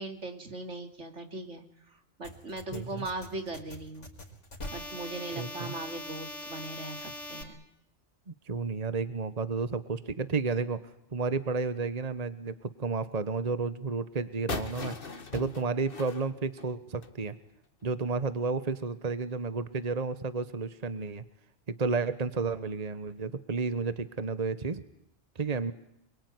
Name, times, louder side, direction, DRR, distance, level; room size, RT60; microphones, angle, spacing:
voice 1, 0.0-4.1 4.7-7.6, right 2 dB, 80° right, 6 dB, 3.5 m, -39 dB
sound 1, 2.2-7.4, left 1 dB, 80° left, 4.9 m, -42 dB
voice 2, 2.7-3.0 5.4-5.7 8.5-10.8 11.1-15.0 15.3-17.3 17.8-21.2 21.8-24.8 25.4-25.7, right 4 dB, 35° right, 13 dB, 1.3 m, -31 dB
sound 2, 14.5-17.2, left 4 dB, 50° left, 1.8 m, -39 dB
27.0 x 23.0 x 9.6 m, 0.76 s
omnidirectional pair, 1.2 m